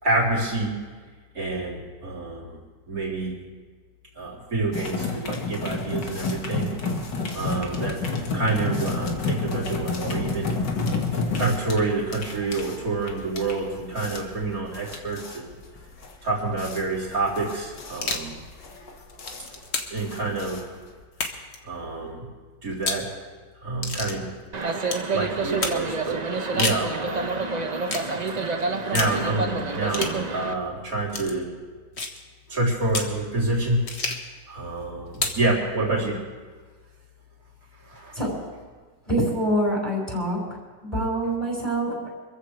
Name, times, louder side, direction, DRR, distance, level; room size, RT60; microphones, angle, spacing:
voice 1, 0.0-0.7 1.3-2.6 2.9-3.3 4.2-6.7 7.3-8.0 8.3-10.6 11.4-15.6 16.2-18.4 19.9-20.7 21.6-22.3 22.6-23.1 23.6-24.3 25.1-26.2 26.5-27.4 28.9-31.5 32.5-33.8 34.5-36.2 37.8-38.2, right 2 dB, 50° right, -4 dB, 4.0 m, -27 dB
sound 1, 4.7-21.0, left 3 dB, 70° left, 2.4 m, -30 dB
sound 2, 17.9-18.3 19.0-20.0 21.1-21.6 22.7-23.1 23.8-24.2 24.9-25.1 25.6-25.8 26.4-26.9 27.9-28.1 28.9-29.2 29.9-30.2 31.1-31.3 32.0-32.2 32.9-33.1 33.9-34.3 35.1-35.4, left 3 dB, 40° left, 1.5 m, -29 dB
sound 3, 24.5-30.5, right 3 dB, 30° right, 0.8 m, -28 dB
voice 2, 39.1-40.4 40.8-41.9, right 1 dB, 20° left, -4 dB, 5.2 m, -25 dB
26.5 x 15.0 x 3.3 m, 1.5 s
omnidirectional pair, 1.9 m